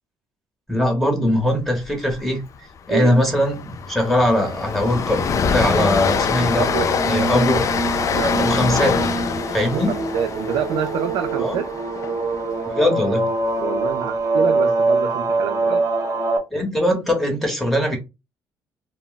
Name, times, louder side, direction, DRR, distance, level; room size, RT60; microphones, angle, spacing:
voice 1, 0.7-2.4 2.9-5.2 5.5-6.7 7.1-7.8 8.4-9.0 9.5-10.0 11.4-11.6 12.7-13.3 16.5-18.0, left 1 dB, ahead, 1.0 m, -20 dB
Train, 1.8-2.1 2.4-2.6 2.9-13.1, left 6 dB, 45° left, 0.4 m, -24 dB
sound 1, 6.1-16.4, right 3 dB, 40° right, 0.7 m, -24 dB
voice 2, 6.6-6.9 8.1-8.5 9.7-11.7 13.6-15.8, right 8 dB, 80° right, 0.4 m, -26 dB
2.2 x 2.1 x 3.8 m
cardioid pair, 90°, 8 cm